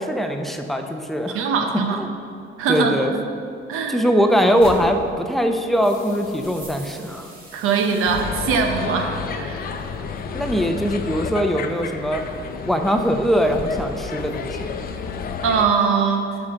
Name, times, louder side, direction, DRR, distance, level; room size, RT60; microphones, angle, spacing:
voice 1, 0.0-1.4 2.0-2.1 2.7-3.1 3.9-7.3 10.3-12.2 12.6-14.8, equal, ahead, 4 dB, 0.6 m, -21 dB
voice 2, 1.3-2.0 2.6-3.0 3.7-4.0 7.5-9.6 15.4-16.3, right 5 dB, 85° right, 4 dB, 0.9 m, -21 dB
sound 1, 4.5-15.4, left 4 dB, 70° left, 0.8 m, -38 dB
sound 2, 6.4-8.2, right 2 dB, 40° right, 1.7 m, -43 dB
sound 3, 8.1-15.7, left 5 dB, 45° left, 0.5 m, -32 dB
5.7 x 4.9 x 6.3 m, 2.5 s
cardioid pair, 100°, 21 cm